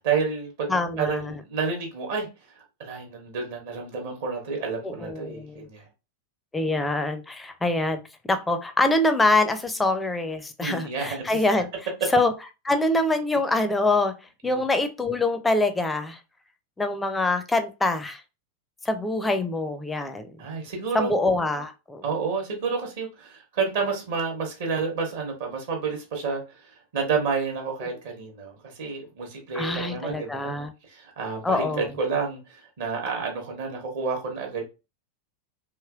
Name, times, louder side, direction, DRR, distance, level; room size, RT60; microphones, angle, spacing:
voice 1, 0.0-5.9 10.6-11.4 12.0-12.1 14.4-14.6 20.4-21.1 22.0-30.5 30.9-34.6, right 5 dB, 55° right, 1.0 m, -30 dB
voice 2, 0.7-1.3 4.8-5.7 6.5-8.0 8.3-11.7 12.1-12.3 12.6-14.1 14.4-16.2 16.8-18.2 18.9-20.3 20.9-22.0 29.5-30.7 31.4-31.8, left 2 dB, 10° left, 0.5 m, -24 dB
3.0 x 2.8 x 2.4 m
figure-of-eight pair, 90°, 0 cm